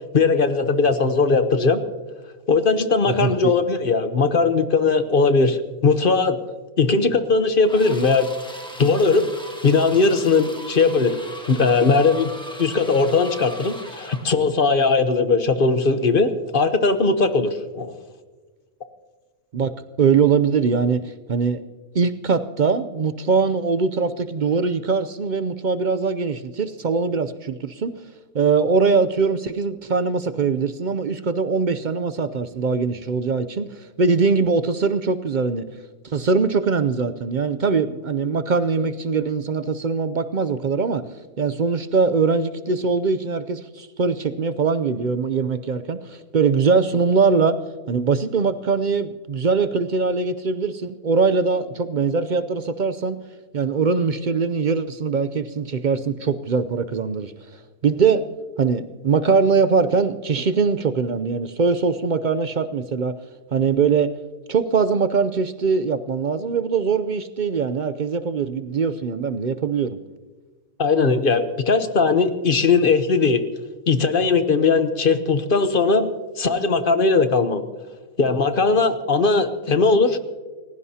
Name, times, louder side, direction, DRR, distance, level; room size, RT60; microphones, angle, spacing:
voice 1, 0.1-1.8 2.5-6.4 6.8-8.3 8.8-9.2 9.6-11.2 11.5-12.3 12.6-17.9 70.8-73.4 73.9-76.1 76.4-77.6 78.2-80.2, left 4 dB, 45° left, 10 dB, 1.0 m, -19 dB
voice 2, 3.1-3.5 19.5-19.7 20.0-21.6 21.9-27.9 28.3-33.7 34.0-35.6 36.0-41.0 41.4-47.6 47.9-53.2 53.5-57.3 57.8-58.2 58.6-63.1 63.5-64.1 64.5-70.0, right 5 dB, 55° right, 11 dB, 0.5 m, -22 dB
sound 1, 7.7-14.3, equal, 5° left, 1.4 m, -39 dB
29.5 x 16.0 x 2.8 m, 1.3 s
omnidirectional pair, 1.4 m